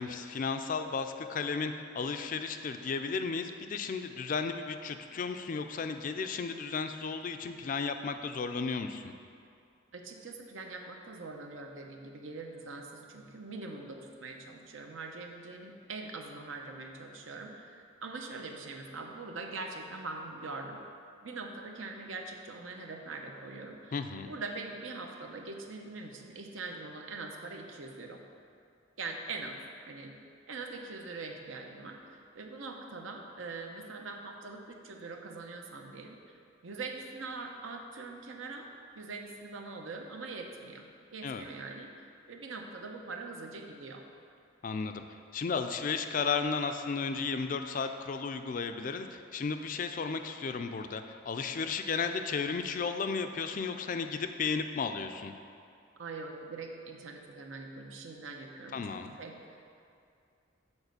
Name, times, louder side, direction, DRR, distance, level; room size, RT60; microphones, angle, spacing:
voice 1, 0.0-9.1 23.9-24.3 41.2-41.4 44.6-45.0 45.3-55.3 58.7-59.2, left 5 dB, 40° left, 8 dB, 0.3 m, -34 dB
voice 2, 9.9-20.9 21.2-24.0 24.2-28.2 29.0-29.6 29.8-30.1 30.5-36.2 36.6-38.7 38.9-44.0 56.0-59.6, right 3 dB, 80° right, 3 dB, 0.8 m, -43 dB
7.2 x 4.0 x 6.6 m, 2.5 s
head